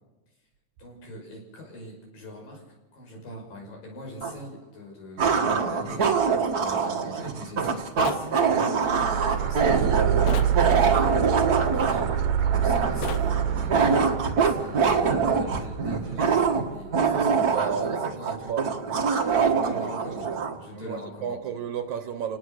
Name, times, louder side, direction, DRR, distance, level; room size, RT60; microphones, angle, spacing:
voice 1, 0.8-12.3 12.6-14.2 14.4-18.5 19.2-21.4, left 1 dB, 85° left, 0 dB, 7.4 m, -42 dB
sound 1, 4.2-4.3 5.2-20.6, right 5 dB, 45° right, 1.2 m, -24 dB
sound 2, 8.0-8.3 10.3-10.6 13.0-13.3, left 8 dB, 65° left, 1.7 m, -33 dB
sound 3, 8.8-17.2, right 8 dB, 85° right, 2.8 m, -27 dB
voice 2, 17.2-18.6 20.7-22.4, right 7 dB, 70° right, 9 dB, 2.3 m, -33 dB
30.0 x 18.5 x 6.6 m, 1.1 s
omnidirectional pair, 3.9 m